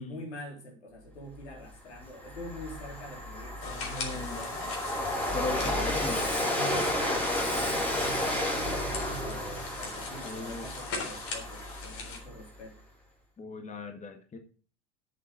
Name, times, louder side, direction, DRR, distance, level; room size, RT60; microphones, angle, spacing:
voice 1, 0.0-4.6 5.4-6.0 6.6-12.8, left 1 dB, 75° left, 1 dB, 3.9 m, -45 dB
Train, 1.5-1.6 2.0-12.4, left 1 dB, 5° left, 4.2 m, -32 dB
sound 1, 3.6-12.2, left 4 dB, 45° left, 3.8 m, -41 dB
voice 2, 3.6-4.4 5.3-6.2 10.2-10.7 13.4-14.4, left 3 dB, 20° left, 5 dB, 1.8 m, -38 dB
8.0 x 7.7 x 7.4 m, 0.41 s
figure-of-eight pair, 75°, 34 cm